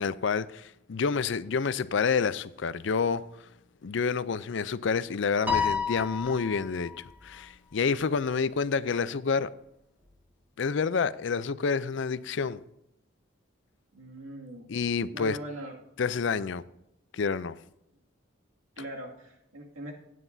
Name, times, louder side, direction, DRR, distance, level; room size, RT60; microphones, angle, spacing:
voice 1, 0.0-3.2 3.8-6.9 7.2-9.5 10.6-12.6 14.7-15.4 16.0-16.6 17.1-17.6, left 5 dB, 60° left, 0.4 m, -28 dB
Piano, 5.5-7.0, left 6 dB, 10° right, 1.8 m, -30 dB
voice 2, 13.9-14.7 15.1-15.8 18.8-19.9, right 1 dB, 90° right, 2.2 m, -41 dB
15.5 x 9.3 x 2.7 m
head